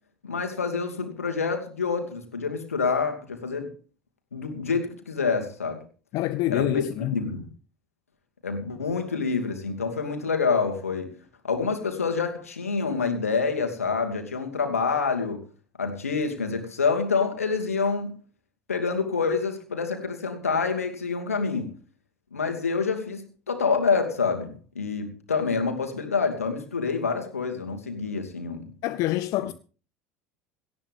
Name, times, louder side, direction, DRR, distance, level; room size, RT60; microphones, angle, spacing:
voice 1, 0.2-3.7 4.3-5.8 6.5-7.5 8.4-11.1 11.4-15.5 15.8-18.2 18.7-21.7 22.3-28.7, left 5 dB, 80° left, 2.6 m, -27 dB
voice 2, 6.1-7.2 28.8-29.5, left 15 dB, 50° left, 0.7 m, -26 dB
18.0 x 15.0 x 3.7 m
figure-of-eight pair, 70°, 8 cm